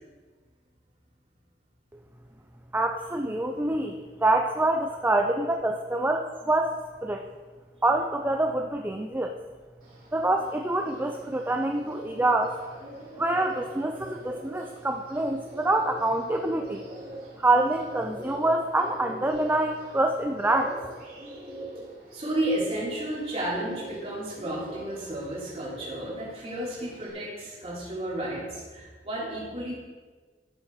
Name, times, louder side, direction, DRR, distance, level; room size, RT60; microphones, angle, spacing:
voice 1, 2.7-7.2 7.8-9.3 10.1-12.5 13.2-16.8 17.4-20.6, right 2 dB, 10° right, 4 dB, 0.5 m, -26 dB
Bird, 9.8-27.1, right 1 dB, 55° right, 3.7 m, -43 dB
voice 2, 22.1-29.7, right 1 dB, 35° right, -7 dB, 3.4 m, -32 dB
12.0 x 7.3 x 4.8 m, 1.4 s
head